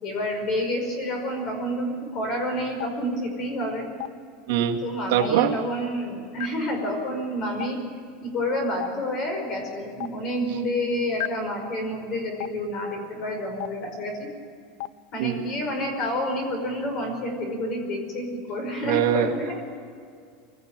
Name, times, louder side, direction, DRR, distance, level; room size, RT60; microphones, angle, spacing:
voice 1, 0.0-3.9 4.8-7.8 8.2-14.3 15.1-19.6, equal, 30° left, 4 dB, 5.4 m, -29 dB
Stream, 2.8-2.9 4.0-4.1 5.2-5.3 6.4-6.5 7.6-7.7 8.8-8.9 10.0-10.1 11.2-11.3 12.4-12.5 13.6-13.7 14.8-14.9 16.0-16.1, left 15 dB, 60° left, 0.6 m, -29 dB
voice 2, 4.5-4.8 5.1-5.6 15.2-15.4 18.8-19.3, right 11 dB, 70° right, 2 dB, 2.1 m, -22 dB
23.5 x 17.0 x 9.0 m, 2.2 s
supercardioid pair, 180°, 0 cm